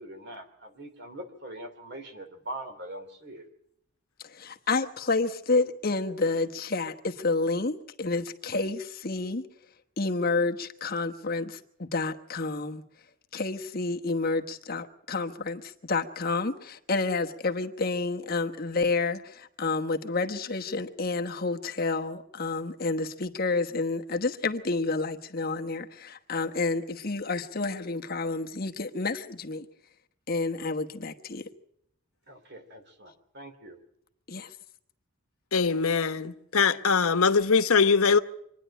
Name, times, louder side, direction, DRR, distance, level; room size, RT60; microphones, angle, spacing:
voice 1, 0.0-3.5 32.3-33.8, right 1 dB, 50° right, 3.0 m, -42 dB
voice 2, 4.2-9.4 10.0-12.8 13.3-29.7 30.3-31.5 34.3-34.5, left 3 dB, 45° left, 1.1 m, -29 dB
voice 3, 35.5-38.2, left 5 dB, 80° left, 1.0 m, -22 dB
25.5 x 10.5 x 9.9 m
head